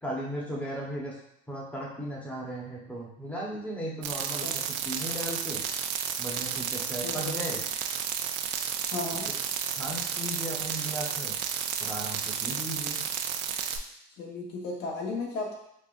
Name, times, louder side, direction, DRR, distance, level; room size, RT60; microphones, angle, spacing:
voice 1, 0.0-1.2 1.5-5.6 6.2-7.6 9.7-11.3 11.8-13.0, right 1 dB, 5° left, -4 dB, 1.1 m, -36 dB
sound 1, 4.0-13.8, right 8 dB, 60° right, 0.4 m, -32 dB
voice 2, 7.0-7.3 8.9-9.2 14.2-15.5, left 3 dB, 55° left, -3 dB, 1.3 m, -34 dB
5.4 x 2.4 x 2.5 m, 0.78 s
supercardioid pair, 120°, 20 cm